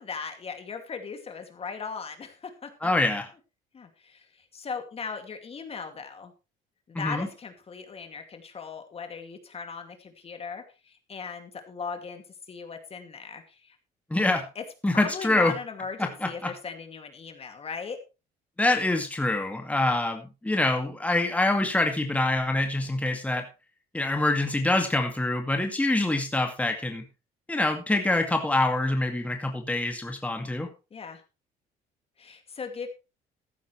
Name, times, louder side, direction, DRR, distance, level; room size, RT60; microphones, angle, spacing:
voice 1, 0.0-2.9 3.7-6.3 6.9-13.8 14.6-18.0 30.9-31.2 32.2-32.9, left 5 dB, 35° left, 6 dB, 2.4 m, -38 dB
voice 2, 2.8-3.3 6.9-7.3 14.1-14.4 14.8-15.5 16.0-16.5 18.6-23.5 23.9-27.0 27.5-30.7, left 2 dB, 10° left, 4 dB, 2.1 m, -25 dB
14.5 x 11.5 x 3.3 m, 0.29 s
cardioid pair, 110°, 17 cm